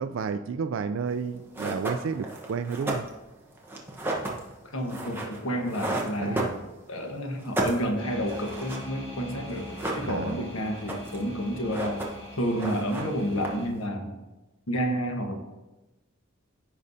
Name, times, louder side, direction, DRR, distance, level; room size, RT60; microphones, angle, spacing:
voice 1, 0.0-3.1 6.2-6.5 10.0-10.4, right 5 dB, 65° right, 9 dB, 0.3 m, -31 dB
sound 1, 1.2-1.3 1.5-7.0 7.3-8.9 9.2-9.3 9.5-10.4 10.7-11.3 11.6-12.3 12.6-13.8, right 2 dB, 10° right, 1.0 m, -33 dB
voice 2, 4.7-6.6 6.9-9.7 10.0-12.1 12.4-14.1 14.7-15.4, equal, 80° left, 3 dB, 1.2 m, -30 dB
sound 2, 8.0-13.7, left 1 dB, 25° left, 1.8 m, -42 dB
15.0 x 5.3 x 2.7 m, 1.1 s
head